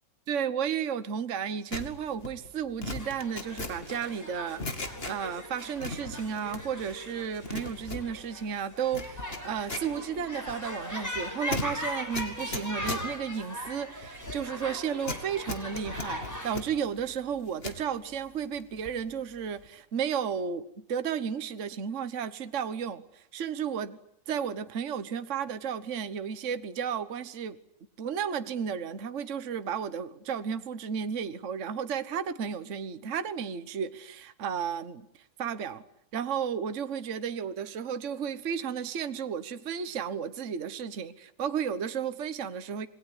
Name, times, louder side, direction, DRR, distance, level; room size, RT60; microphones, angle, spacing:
voice 1, 0.3-24.0 24.3-27.6 28.0-35.1 35.4-35.8 36.1-42.9, right 7 dB, 45° right, 1.5 m, -33 dB
sound 1, 1.7-5.5 5.8-6.9 7.2-17.9 18.3-19.1 19.4-19.7, left 3 dB, 35° left, 2.7 m, -39 dB
sound 2, 3.0-16.6, left 1 dB, 10° left, 6.0 m, -40 dB
27.5 x 21.5 x 9.8 m
omnidirectional pair, 1.9 m